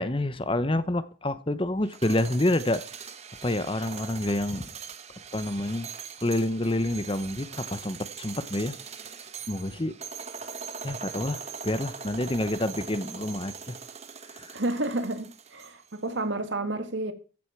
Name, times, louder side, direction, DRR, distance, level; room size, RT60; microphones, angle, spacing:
voice 1, 0.0-2.8 3.4-4.7 5.3-5.9 6.2-8.7 9.5-9.9 10.8-13.7 14.3-14.5, left 1 dB, 25° left, 0.9 m, -28 dB
sound 1, 1.8-16.0, right 6 dB, 35° right, 1.2 m, -41 dB
voice 2, 14.5-17.1, right 2 dB, 70° right, 2.0 m, -30 dB
15.0 x 7.9 x 6.0 m
head